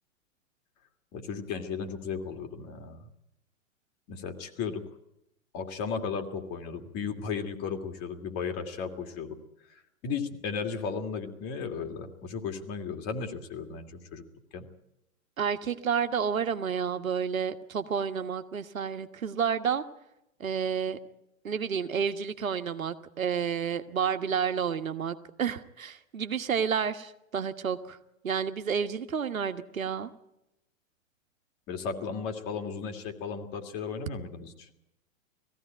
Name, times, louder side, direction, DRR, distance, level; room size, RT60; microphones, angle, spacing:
voice 1, 1.1-3.1 4.1-4.8 5.5-9.4 9.7-14.2 14.5-14.7 31.7-34.7, left 5 dB, 35° left, 5 dB, 2.6 m, -35 dB
voice 2, 15.4-19.8 20.4-21.0 21.4-28.0 28.2-30.1, right 7 dB, 80° right, 8 dB, 1.4 m, -30 dB
19.0 x 15.5 x 9.2 m, 0.85 s
hypercardioid pair, 110°, 40 cm